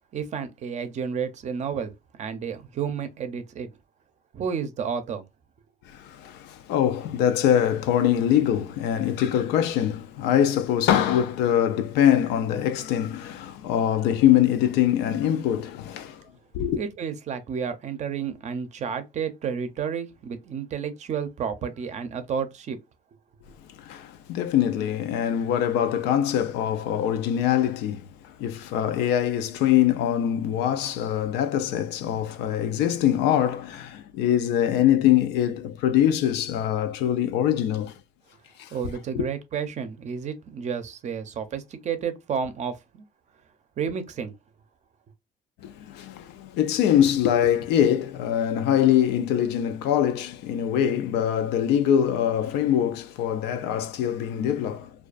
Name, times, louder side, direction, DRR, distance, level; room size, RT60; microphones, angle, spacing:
voice 1, 0.1-1.9 2.2-3.7 4.3-5.2 16.7-22.8 38.7-43.0 43.8-44.3, right 7 dB, 45° right, 0.5 m, -31 dB
voice 2, 5.9-16.2 16.5-16.8 23.8-38.0 38.6-38.7 39.1-39.2 45.6-54.9, left 10 dB, 90° left, 0.4 m, -23 dB
2.4 x 2.2 x 2.3 m
cardioid pair, 110°, 17 cm